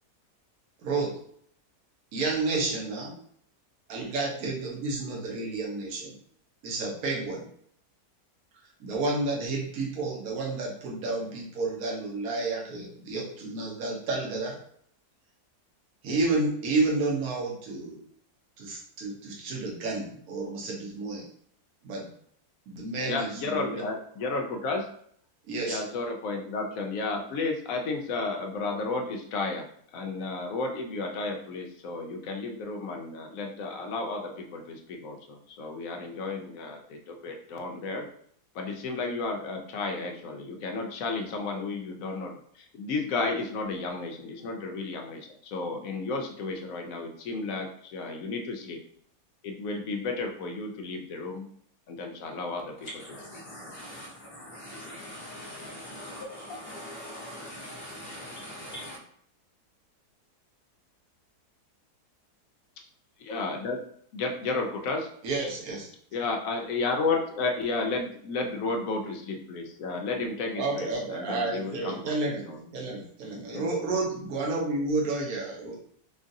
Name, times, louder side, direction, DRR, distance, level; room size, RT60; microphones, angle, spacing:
voice 1, 2.1-3.1 3.9-6.1 6.6-7.4 8.8-14.5 16.0-18.0 18.6-21.2 21.8-22.1 22.7-23.8 25.5-25.8 65.2-65.9 70.5-75.9, right 3 dB, 65° right, 1.3 m, -30 dB
voice 2, 23.0-24.9 25.6-29.7 29.9-38.1 38.5-48.8 49.4-51.5 51.9-52.7 63.3-63.8 64.1-65.1 66.1-72.6 73.5-73.7, left 3 dB, 70° left, 0.9 m, -32 dB
voice 3, 52.8-59.0, left 1 dB, 40° left, 1.4 m, -42 dB
3.8 x 2.5 x 2.6 m
omnidirectional pair, 1.7 m